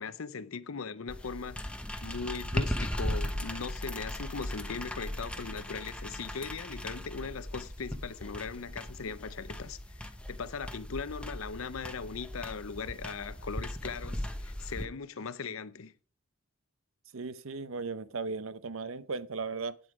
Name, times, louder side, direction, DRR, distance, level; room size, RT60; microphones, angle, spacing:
voice 1, 0.0-15.9, left 5 dB, 75° left, 0.7 m, -39 dB
sound 1, 1.1-14.8, left 1 dB, 5° left, 0.9 m, -38 dB
voice 2, 17.1-19.8, right 4 dB, 70° right, 0.8 m, -36 dB
9.4 x 7.9 x 4.8 m
head